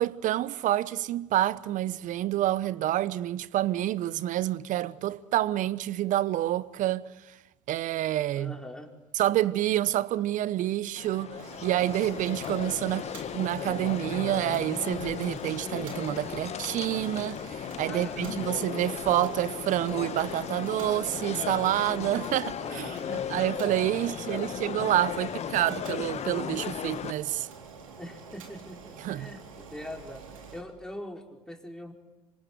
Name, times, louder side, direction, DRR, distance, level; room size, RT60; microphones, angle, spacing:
voice 1, 0.0-7.0 7.7-8.6 9.1-27.5 29.0-29.3, right 13 dB, 50° right, 1.0 m, -28 dB
voice 2, 8.3-8.9 17.8-18.4 22.6-23.1 24.1-24.5 28.0-31.9, left 1 dB, 5° left, 4.8 m, -42 dB
sound 1, 11.0-27.1, left 9 dB, 40° left, 1.1 m, -36 dB
Boiling, 11.4-30.6, right 5 dB, 85° right, 3.7 m, -47 dB
27.5 x 26.0 x 8.2 m
hypercardioid pair, 65°, 17 cm